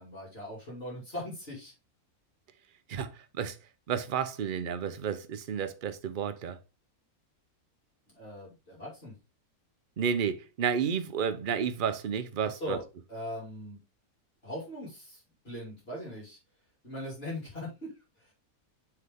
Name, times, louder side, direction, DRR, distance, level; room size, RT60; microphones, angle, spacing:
voice 1, 0.0-1.7 8.1-9.1 12.6-13.8 14.4-16.4 16.8-17.9 18.2-18.3, left 1 dB, 40° left, 2.9 m, -40 dB
voice 2, 3.9-6.6 10.0-12.8, right 7 dB, 45° right, 0.7 m, -31 dB
6.5 x 4.9 x 3.6 m
omnidirectional pair, 1.6 m